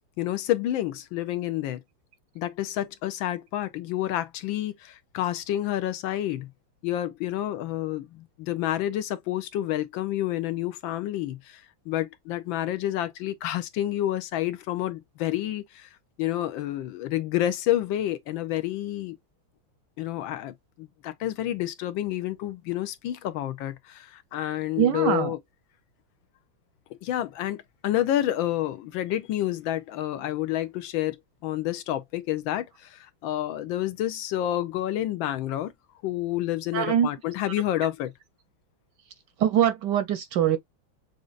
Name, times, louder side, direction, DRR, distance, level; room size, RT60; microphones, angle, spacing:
voice 1, 0.2-1.8 2.3-6.5 6.8-15.9 16.2-19.2 20.0-25.4 26.9-27.6 27.8-31.2 31.4-35.7 36.0-38.1, left 13 dB, 75° left, 1.4 m, -29 dB
voice 2, 24.8-25.3 36.7-37.1 39.4-40.6, right 10 dB, 70° right, 1.1 m, -23 dB
6.4 x 2.5 x 2.4 m
omnidirectional pair, 2.3 m